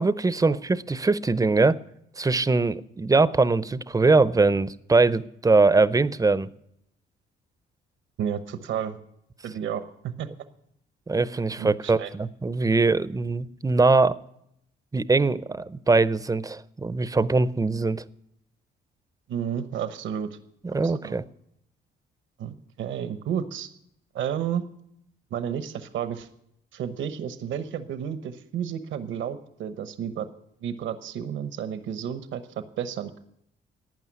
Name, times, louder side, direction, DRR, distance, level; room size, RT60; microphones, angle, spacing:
voice 1, 0.0-1.8 2.2-6.5 11.1-14.1 14.9-18.0 20.6-21.2, right 3 dB, 15° right, 16 dB, 0.6 m, -22 dB
voice 2, 8.2-9.0 9.4-10.3 11.6-12.1 19.3-20.4 20.8-21.2 22.4-23.7 24.1-24.6 25.3-26.3 26.7-30.3 30.6-32.4 32.8-33.2, right 8 dB, 75° right, 10 dB, 1.0 m, -31 dB
12.5 x 8.8 x 9.8 m, 0.76 s
cardioid pair, 90°, 20 cm